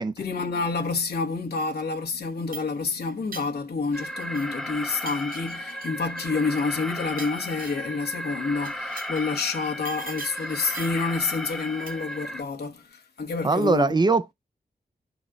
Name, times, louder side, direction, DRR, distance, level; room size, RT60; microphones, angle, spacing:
voice 1, 0.2-14.0, left 4 dB, 90° left, 1.1 m, -28 dB
sound 1, 2.2-4.6 4.8-8.0 8.6-9.3 9.8-11.1 11.9-12.2, right 3 dB, 60° right, 1.5 m, -43 dB
Alarm, 3.9-12.4, equal, ahead, 1.0 m, -35 dB
voice 2, 13.4-14.3, right 3 dB, 25° right, 0.5 m, -21 dB
12.0 x 4.1 x 2.3 m
wide cardioid pair, 105°, 16 cm